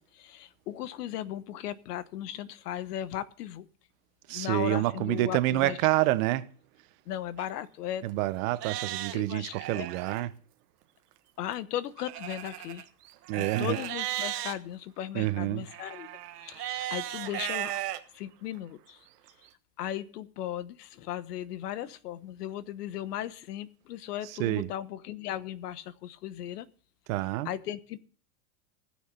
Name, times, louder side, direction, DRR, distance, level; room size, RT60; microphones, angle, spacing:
voice 1, 0.0-3.7 4.3-5.8 7.1-8.1 9.1-9.9 11.4-12.9 13.4-16.1 16.4-17.8 18.1-19.0 19.8-26.7 27.4-28.0, left 11 dB, 80° left, 1.2 m, -37 dB
voice 2, 4.3-6.5 8.0-10.3 13.3-13.8 15.1-15.6 24.4-24.7 27.1-27.5, right 17 dB, 60° right, 1.1 m, -28 dB
Livestock farm animals working animals, 7.4-7.5 8.1-8.2 8.5-10.3 12.0-14.5 15.7-18.0 18.6-18.7 19.3-19.4, right 14 dB, 85° right, 1.4 m, -36 dB
16.0 x 6.5 x 6.7 m
supercardioid pair, 135°, 46 cm